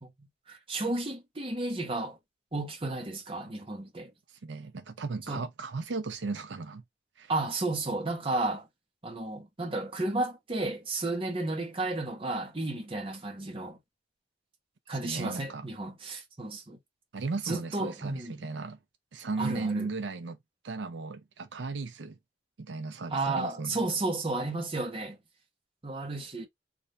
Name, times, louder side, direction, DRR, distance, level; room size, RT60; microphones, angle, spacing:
voice 1, 0.0-2.2 2.5-4.1 5.3-5.4 7.3-8.7 9.0-13.8 14.9-16.8 17.4-18.5 19.4-19.9 23.1-25.2 25.8-26.5, right 2 dB, 30° right, 1.0 m, -33 dB
voice 2, 4.3-6.8 7.2-7.3 15.0-15.6 17.1-18.8 19.1-20.4 20.6-22.2 22.6-23.8, right 3 dB, 80° right, 0.5 m, -36 dB
3.2 x 2.6 x 2.6 m
head